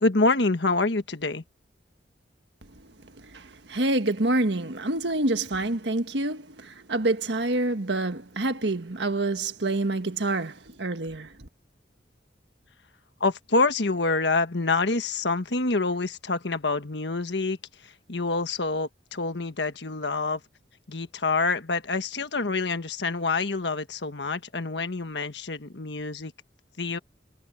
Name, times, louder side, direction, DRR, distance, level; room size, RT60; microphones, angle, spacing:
voice 1, 0.0-1.4 13.2-17.6 17.8-20.4 20.9-26.3 26.8-27.0, left 3 dB, 75° left, 1.4 m, -26 dB
voice 2, 3.3-11.5, right 2 dB, 75° right, 1.6 m, -27 dB
head